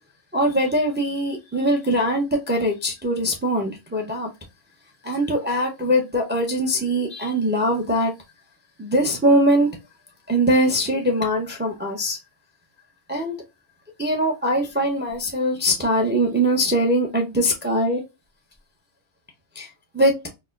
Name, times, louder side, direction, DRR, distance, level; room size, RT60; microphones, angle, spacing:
voice 1, 0.3-4.3 5.0-8.1 8.8-9.7 10.3-12.2 13.1-13.4 14.0-18.0 19.6-20.2, equal, 15° right, 0.4 m, -22 dB
4.1 x 2.1 x 2.3 m
omnidirectional pair, 1.2 m